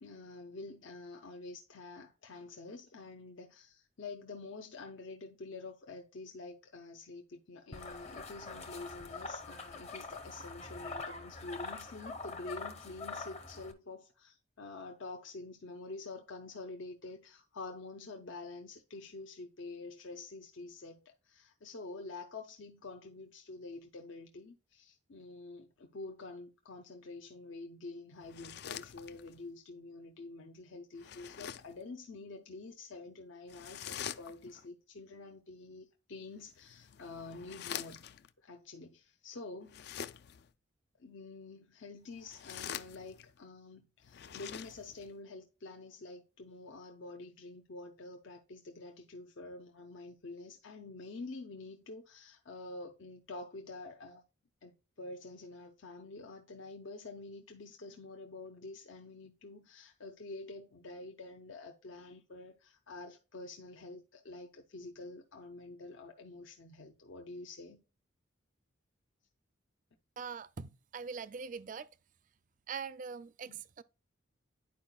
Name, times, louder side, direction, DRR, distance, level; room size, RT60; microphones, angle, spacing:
voice 1, 0.0-38.0 38.4-39.8 41.0-54.2 54.6-67.8 73.5-73.6, left 3 dB, 70° left, 0.7 m, -47 dB
sound 1, 7.7-13.7, left 3 dB, 35° left, 0.8 m, -44 dB
sound 2, 28.2-29.5 31.0-31.8 33.5-34.7 36.5-38.3 39.6-40.5 42.1-43.4 44.0-45.1, left 9 dB, 50° left, 0.3 m, -45 dB
voice 2, 70.2-71.9 72.7-73.8, right 5 dB, 40° right, 0.4 m, -42 dB
10.5 x 4.7 x 2.2 m
head